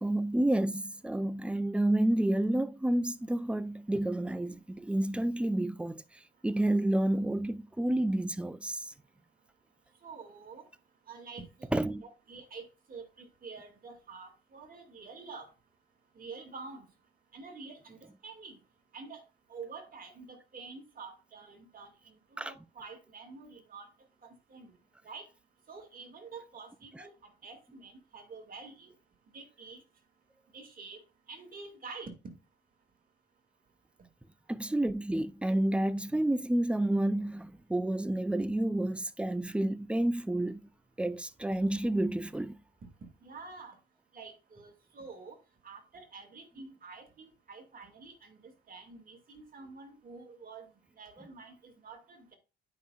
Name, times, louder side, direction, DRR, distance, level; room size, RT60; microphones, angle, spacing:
voice 1, 0.0-6.0 6.4-8.9 11.7-12.0 22.4-22.5 34.5-40.6 41.0-42.5, right 1 dB, 5° right, 0.4 m, -29 dB
voice 2, 10.0-10.6 11.1-11.7 12.0-15.5 16.2-16.9 17.3-18.6 18.9-19.2 19.5-21.9 22.3-23.9 24.2-24.7 25.0-25.3 25.7-28.9 29.3-29.8 30.5-31.0 31.3-32.1 43.2-43.8 44.1-45.4 45.6-50.7 51.0-52.4, right 4 dB, 45° right, 2.2 m, -48 dB
9.3 x 5.3 x 2.3 m
cardioid pair, 90°, 20 cm